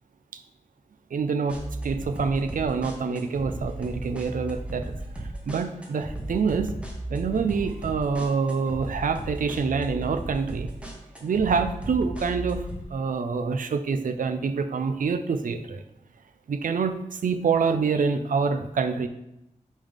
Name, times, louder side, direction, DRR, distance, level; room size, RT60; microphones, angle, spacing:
voice 1, 1.1-4.9 5.5-6.8 7.1-10.7 11.2-15.8 16.5-19.1, right 5 dB, 80° right, 8 dB, 0.5 m, -26 dB
sound 1, 1.5-12.8, right 1 dB, 10° right, 1.1 m, -36 dB
5.5 x 5.3 x 3.5 m, 0.84 s
wide cardioid pair, 105°, 14 cm